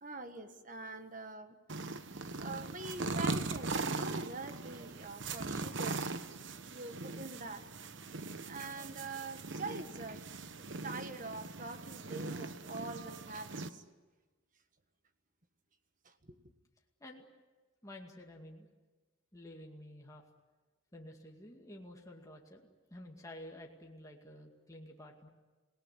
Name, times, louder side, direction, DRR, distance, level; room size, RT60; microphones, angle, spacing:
voice 1, 0.0-1.5 2.4-6.0 6.7-7.6 8.5-10.2 10.6-13.8, right 3 dB, 40° right, 8 dB, 1.6 m, -44 dB
sound 1, 1.7-13.7, right 3 dB, 60° right, 1.1 m, -40 dB
voice 2, 17.8-18.7 19.3-20.2 20.9-25.3, left 1 dB, 15° left, 0 dB, 2.2 m, -51 dB
27.0 x 18.5 x 9.7 m, 1.3 s
head